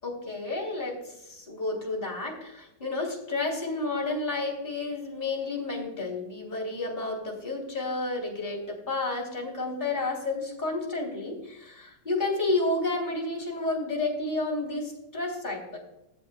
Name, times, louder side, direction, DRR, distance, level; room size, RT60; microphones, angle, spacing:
voice 1, 0.0-15.8, left 2 dB, 20° left, -1 dB, 3.4 m, -31 dB
17.5 x 8.7 x 2.3 m, 0.85 s
omnidirectional pair, 2.4 m